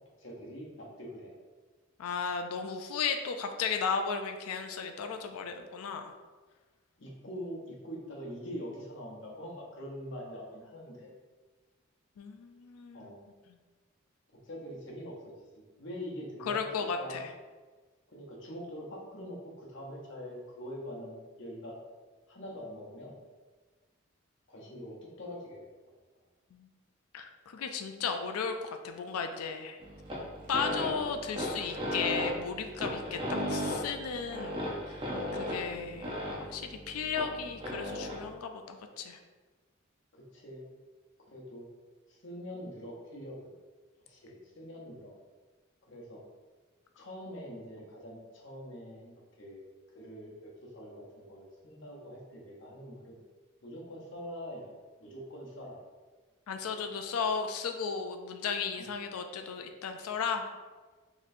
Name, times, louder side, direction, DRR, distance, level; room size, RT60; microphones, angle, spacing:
voice 1, 0.2-1.3 7.0-11.1 12.9-13.2 14.3-16.7 17.0-17.3 18.1-21.8 22.3-23.1 24.5-25.7 40.1-40.7 41.3-41.7 42.1-43.5 44.1-45.1 45.9-46.2 47.0-49.6 49.9-53.2 53.6-55.8 58.8-59.0, equal, 55° left, -2 dB, 0.8 m, -44 dB
voice 2, 2.0-6.1 12.2-13.1 16.4-17.3 26.5-26.7 27.1-29.8 30.5-35.0 35.3-36.1 36.5-39.2 56.5-60.4, left 5 dB, 90° left, 6 dB, 0.4 m, -35 dB
sound 1, 29.8-38.3, left 1 dB, 25° right, 0.6 m, -36 dB
4.0 x 3.0 x 2.6 m, 1.3 s
head